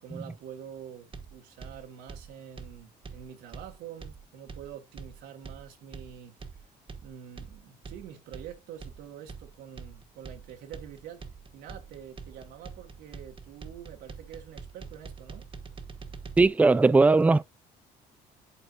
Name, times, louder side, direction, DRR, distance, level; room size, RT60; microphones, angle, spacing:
voice 1, 0.0-6.6 7.0-11.2 11.5-15.5, right 9 dB, 85° right, 1.5 m, -46 dB
sound 1, 1.1-16.5, right 5 dB, 30° right, 1.2 m, -44 dB
voice 2, 16.4-17.4, right 3 dB, 10° right, 0.3 m, -19 dB
11.0 x 4.3 x 2.5 m
cardioid pair, 110°, 17 cm